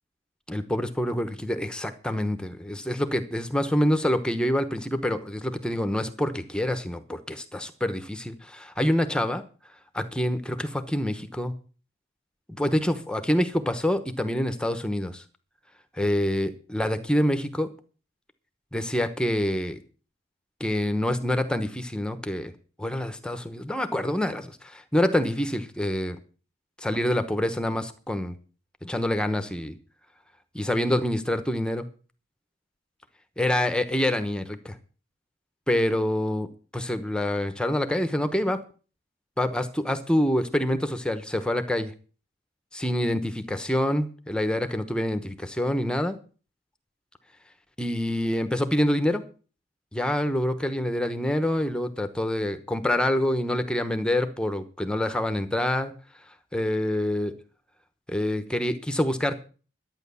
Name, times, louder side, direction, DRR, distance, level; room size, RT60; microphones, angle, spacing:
voice 1, 0.5-9.4 9.9-11.5 12.6-15.2 15.9-17.7 18.7-19.8 20.6-22.5 22.8-26.2 26.8-28.3 28.8-29.7 30.5-31.8 33.4-34.8 35.7-38.6 39.4-41.9 42.7-46.2 47.8-49.2 49.9-55.9 56.5-57.3 58.1-59.4, left 1 dB, 5° left, 9 dB, 1.0 m, -26 dB
12.0 x 9.2 x 6.9 m, 0.38 s
head